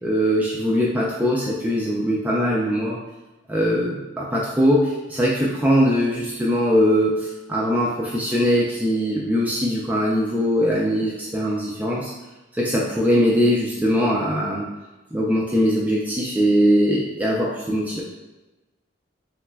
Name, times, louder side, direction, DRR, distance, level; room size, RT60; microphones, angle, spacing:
voice 1, 0.0-3.0 3.5-12.1 12.5-14.6 15.1-18.0, equal, 10° right, -5 dB, 0.3 m, -21 dB
5.6 x 2.1 x 2.2 m, 1.1 s
head